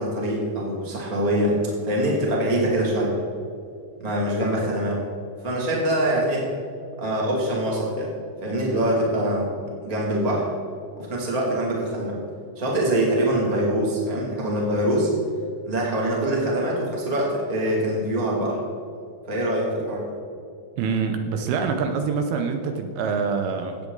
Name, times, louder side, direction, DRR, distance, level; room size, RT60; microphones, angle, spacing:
voice 1, 0.0-3.1 4.0-5.0 5.4-6.5 7.0-8.1 8.4-9.5 9.8-10.5 11.0-12.2 12.5-15.1 15.6-18.6 19.3-20.1, right 1 dB, 15° right, -3 dB, 1.5 m, -24 dB
voice 2, 20.8-23.8, right 5 dB, 80° right, 5 dB, 2.5 m, -25 dB
16.0 x 8.4 x 4.0 m, 2.5 s
omnidirectional pair, 4.7 m